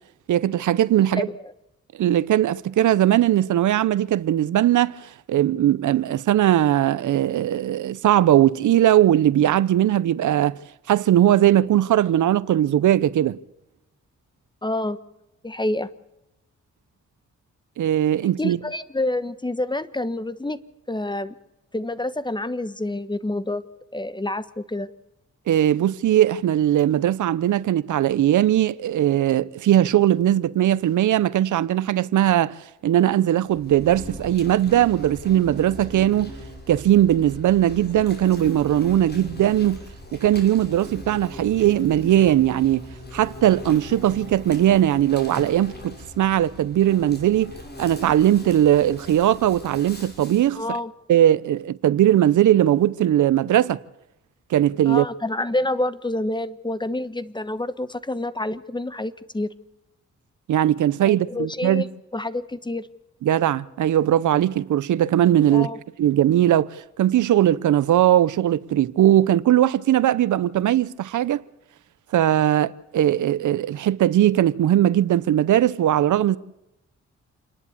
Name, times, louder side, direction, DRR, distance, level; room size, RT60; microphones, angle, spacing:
voice 1, 0.3-1.3 2.0-10.6 10.9-13.4 17.8-18.6 25.5-32.6 32.8-36.3 36.7-39.8 40.1-42.9 43.1-50.8 51.1-53.8 54.5-55.0 60.5-61.8 63.2-65.7 66.0-71.4 72.1-76.4, right 12 dB, 85° right, 0.7 m, -19 dB
voice 2, 14.6-15.0 15.4-15.9 18.4-20.6 20.9-21.3 21.7-23.6 23.9-24.9 50.5-50.9 54.9-59.5 61.1-61.9 62.1-62.9 65.5-65.8, left 2 dB, 15° left, 1.2 m, -27 dB
Insect, 33.5-50.5, left 1 dB, 35° left, 6.3 m, -40 dB
28.0 x 11.0 x 8.3 m
cardioid pair, 70°, 29 cm